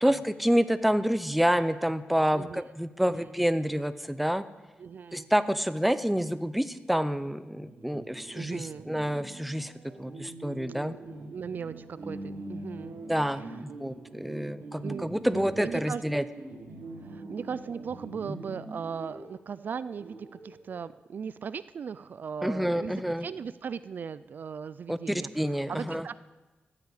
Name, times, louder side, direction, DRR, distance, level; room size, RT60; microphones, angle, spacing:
voice 1, 0.0-4.4 5.1-9.7 10.0-11.0 13.1-16.2 22.4-23.3 24.9-26.1, equal, ahead, 13 dB, 0.5 m, -28 dB
voice 2, 4.8-5.3 8.3-8.9 10.9-11.0 11.3-13.0 13.3-13.5 14.8-16.0 17.0-26.1, right 6 dB, 55° right, 16 dB, 0.3 m, -38 dB
sound 1, 7.7-20.9, right 2 dB, 80° right, 3.0 m, -44 dB
14.5 x 8.4 x 8.2 m, 1.2 s
wide cardioid pair, 130°, 4 cm